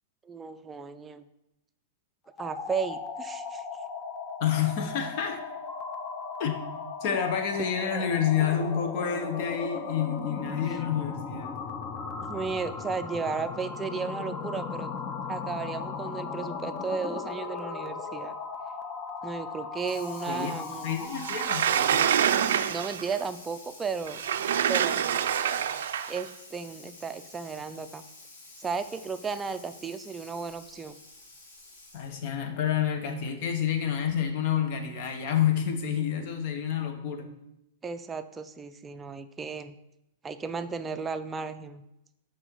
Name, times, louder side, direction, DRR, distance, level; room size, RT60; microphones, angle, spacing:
voice 1, 0.2-1.2 2.4-3.6 7.6-8.1 12.2-14.9 15.3-18.4 19.2-21.1 22.7-24.2 24.7-25.2 26.1-28.0 28.6-31.0 37.8-39.7 40.2-41.8, right 5 dB, 15° right, 9 dB, 0.4 m, -34 dB
sound 1, 2.3-21.7, left 5 dB, 30° left, 0.7 m, -37 dB
voice 2, 4.4-5.4 6.4-6.5 7.0-11.5 20.3-22.1 31.9-37.3, left 8 dB, 50° left, 6 dB, 1.1 m, -29 dB
Water tap faucet / Sink (filling or washing), 19.8-32.3, left 2 dB, 70° left, 2.1 m, -50 dB
Sliding door, 21.2-23.1 24.1-26.2, right 9 dB, 75° right, 0.4 m, -26 dB
6.3 x 5.0 x 4.6 m, 0.85 s
hypercardioid pair, 130°, 0 cm